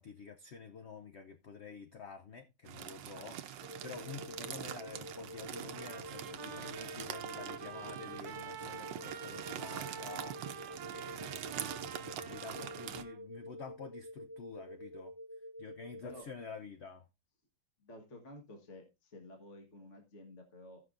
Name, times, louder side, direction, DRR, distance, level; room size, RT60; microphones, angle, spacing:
voice 1, 0.0-10.4 10.9-15.1 15.6-17.1, left 5 dB, 60° left, 0.7 m, -49 dB
sound 1, 2.7-13.0, right 10 dB, 85° right, 1.5 m, -44 dB
sound 2, 3.6-16.2, equal, 90° left, 2.7 m, -49 dB
Trumpet, 5.7-13.2, right 8 dB, 65° right, 1.2 m, -48 dB
voice 2, 17.8-20.8, left 1 dB, 40° left, 1.7 m, -52 dB
17.0 x 5.8 x 2.5 m
omnidirectional pair, 2.0 m